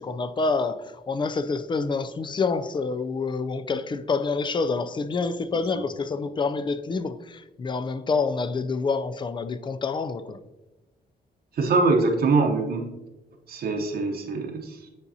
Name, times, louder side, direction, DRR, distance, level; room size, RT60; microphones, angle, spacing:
voice 1, 0.0-10.4, left 4 dB, 30° left, 0.4 m, -27 dB
voice 2, 11.5-12.9 13.5-14.8, right 3 dB, 70° right, 0.9 m, -23 dB
9.7 x 4.0 x 2.7 m
wide cardioid pair, 135°, 17 cm